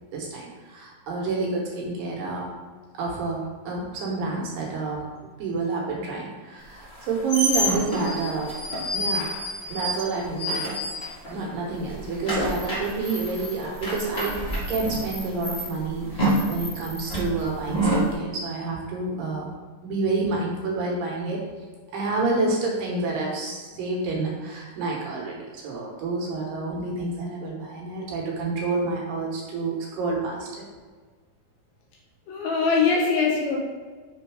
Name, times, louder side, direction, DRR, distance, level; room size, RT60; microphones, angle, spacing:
voice 1, 0.1-2.5 2.9-5.0 5.4-8.5 8.9-9.3 9.7-10.8 11.3-14.4 14.7-19.5 19.8-21.4 21.9-30.7, right 3 dB, 70° right, -2 dB, 2.4 m, -29 dB
sound 1, 6.8-11.5 11.7-18.1, equal, 40° left, 0.9 m, -28 dB
voice 2, 32.3-33.6, left 4 dB, 75° left, -2 dB, 2.6 m, -22 dB
6.0 x 3.9 x 4.7 m, 1.4 s
omnidirectional pair, 4.5 m